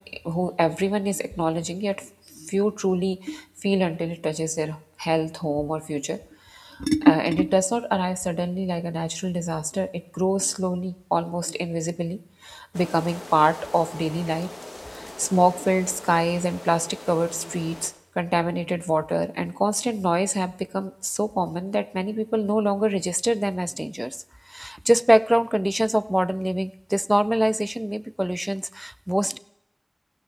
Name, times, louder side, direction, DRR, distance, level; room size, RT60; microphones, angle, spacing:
voice 1, 0.0-6.2 6.5-14.5 14.9-24.2 24.5-29.4, equal, 15° right, 16 dB, 0.4 m, -24 dB
sound 1, 12.7-17.9, left 1 dB, 85° left, 1.1 m, -40 dB
16.0 x 12.0 x 3.3 m, 0.77 s
wide cardioid pair, 40°, 0 cm